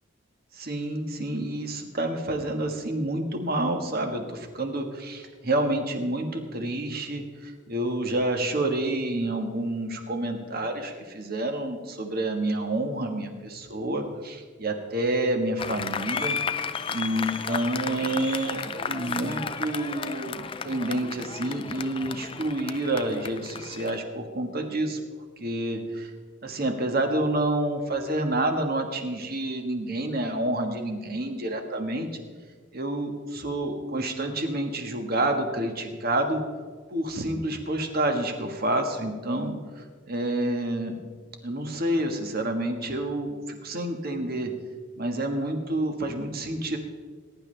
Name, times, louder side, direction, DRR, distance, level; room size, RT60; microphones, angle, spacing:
voice 1, 0.5-16.4 16.9-25.0 25.4-26.1 26.4-32.1 32.7-36.4 36.9-41.0 41.4-44.5 44.9-46.8, right 1 dB, 45° right, 4 dB, 1.5 m, -28 dB
Applause, 15.6-24.0, left 6 dB, 25° left, 0.4 m, -33 dB
20.5 x 10.5 x 3.3 m, 1.5 s
head